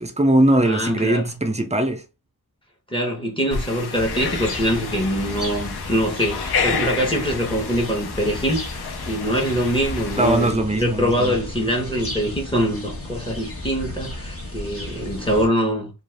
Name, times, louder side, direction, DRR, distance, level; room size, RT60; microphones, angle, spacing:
voice 1, 0.0-2.0 10.2-11.7, right 1 dB, 20° right, 0.5 m, -20 dB
voice 2, 0.6-1.4 2.9-15.9, equal, 15° left, 1.0 m, -24 dB
sound 1, 3.5-10.5, left 6 dB, 80° left, 0.5 m, -30 dB
sound 2, 3.9-15.5, left 1 dB, 35° left, 1.0 m, -34 dB
2.5 x 2.4 x 3.3 m
wide cardioid pair, 80°, 38 cm